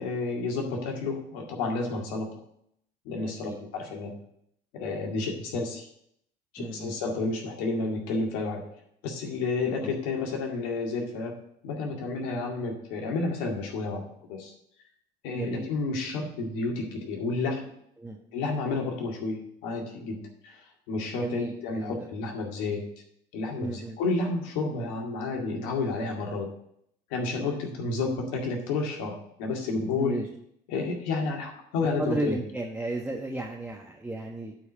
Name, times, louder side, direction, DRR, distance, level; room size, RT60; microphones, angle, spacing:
voice 1, 0.0-2.4 3.0-4.1 4.7-5.9 6.5-8.6 9.0-11.3 11.6-14.0 14.3-14.5 15.2-17.7 18.3-20.6 20.9-22.9 23.3-26.5 27.1-30.2 30.7-32.4, left 3 dB, 80° left, 1 dB, 2.2 m, -31 dB
voice 2, 6.6-6.9 9.8-9.9 15.3-15.7 18.0-18.2 21.1-22.1 23.6-24.0 29.9-30.3 32.0-34.5, right 2 dB, 5° right, -1 dB, 1.3 m, -33 dB
8.8 x 4.7 x 6.7 m, 0.71 s
supercardioid pair, 80°, 21 cm